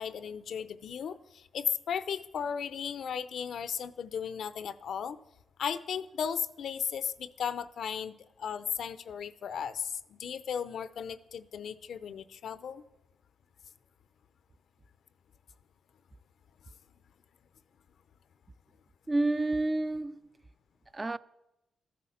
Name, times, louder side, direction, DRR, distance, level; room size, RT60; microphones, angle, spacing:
voice 1, 0.0-5.2 5.6-12.8, left 7 dB, 75° left, 0.6 m, -35 dB
voice 2, 19.1-20.2 20.9-21.2, right 2 dB, 25° right, 0.5 m, -29 dB
14.0 x 9.4 x 7.2 m
cardioid pair, 85°, 0 cm